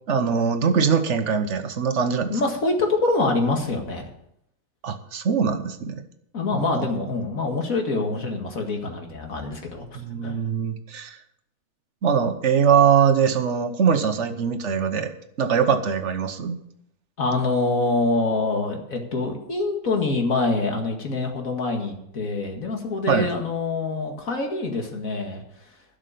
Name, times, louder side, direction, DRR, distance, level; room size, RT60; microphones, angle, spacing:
voice 1, 0.1-2.4 4.8-6.0 6.5-6.9 9.9-11.2 12.0-15.1 15.4-16.6 23.1-23.3, right 7 dB, 55° right, 8 dB, 1.3 m, -22 dB
voice 2, 2.3-4.1 6.3-9.9 10.2-10.4 17.2-25.4, left 3 dB, 70° left, 3 dB, 2.4 m, -25 dB
12.0 x 6.6 x 8.3 m, 0.76 s
omnidirectional pair, 1.5 m